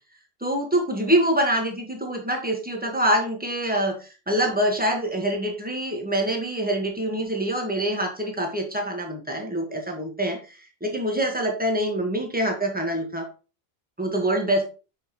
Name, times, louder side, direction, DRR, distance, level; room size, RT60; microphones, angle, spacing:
voice 1, 0.4-13.3 14.0-14.6, right 1 dB, 10° right, 2 dB, 1.4 m, -25 dB
7.3 x 5.4 x 3.0 m, 0.33 s
omnidirectional pair, 1.1 m